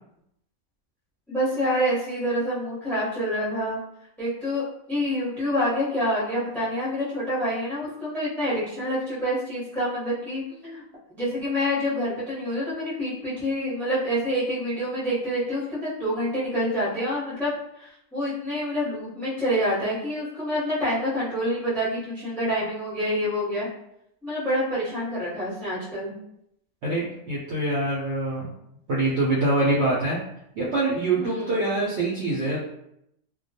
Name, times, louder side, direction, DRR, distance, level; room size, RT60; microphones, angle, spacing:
voice 1, 1.3-3.8 4.2-4.6 4.9-10.8 11.1-23.7 24.2-26.1 31.1-31.6, equal, ahead, -8 dB, 0.6 m, -27 dB
voice 2, 26.8-28.5 28.9-30.2 30.5-32.6, right 2 dB, 65° right, -6 dB, 0.7 m, -24 dB
2.3 x 2.2 x 2.7 m, 0.78 s
omnidirectional pair, 1.6 m